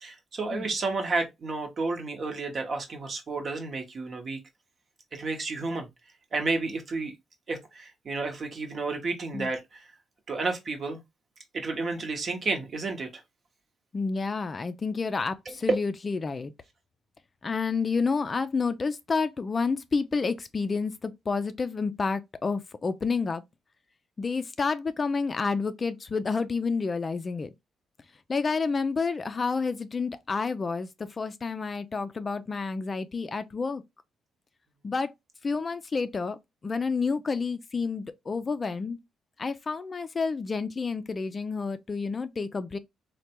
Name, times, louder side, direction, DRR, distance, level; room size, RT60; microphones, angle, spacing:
voice 1, 0.0-4.4 5.1-5.9 6.3-7.1 7.5-9.8 10.3-11.0 11.5-13.1, right 3 dB, 45° right, 0.9 m, -31 dB
voice 2, 13.9-16.5 17.4-23.4 24.2-27.5 28.3-33.8 34.8-35.1 35.4-36.4 36.6-39.0 39.4-42.8, left 4 dB, 35° left, 0.3 m, -29 dB
3.2 x 2.2 x 2.8 m
cardioid pair, 90°, 0 cm